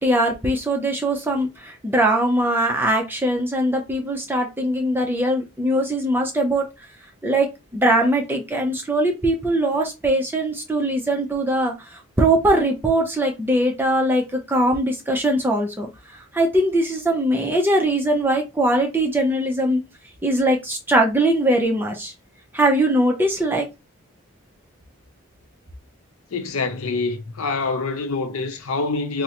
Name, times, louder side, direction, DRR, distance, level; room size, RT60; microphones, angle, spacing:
voice 1, 0.0-6.7 7.2-19.8 20.2-22.1 22.5-23.7, right 1 dB, 10° right, 0.5 m, -21 dB
voice 2, 26.3-29.2, left 3 dB, 75° left, 0.5 m, -25 dB
3.6 x 2.0 x 2.9 m
head